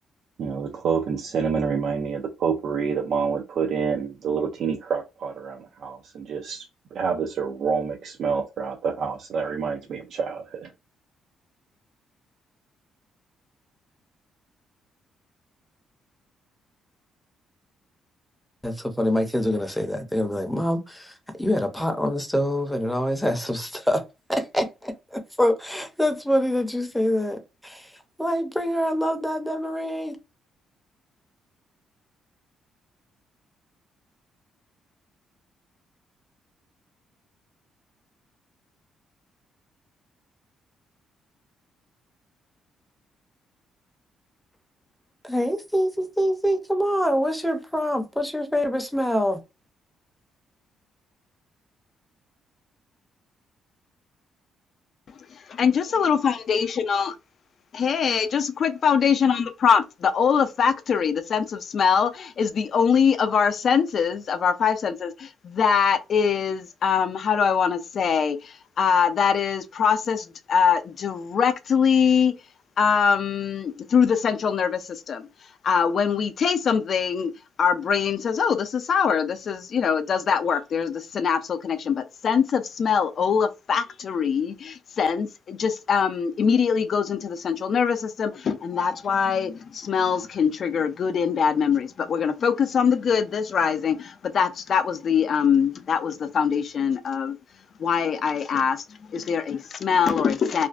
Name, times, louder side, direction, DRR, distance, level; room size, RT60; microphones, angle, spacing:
voice 1, 0.4-6.7 6.9-10.7, right 6 dB, 65° right, 0.4 m, -27 dB
voice 2, 18.6-24.0 24.3-27.9 28.2-30.2 45.2-49.4, equal, 5° left, 0.6 m, -25 dB
voice 3, 55.1-57.1 57.7-72.5 72.8-77.3 77.6-100.7, left 6 dB, 55° left, 0.4 m, -23 dB
2.4 x 2.2 x 2.3 m
cardioid pair, 90°, 0 cm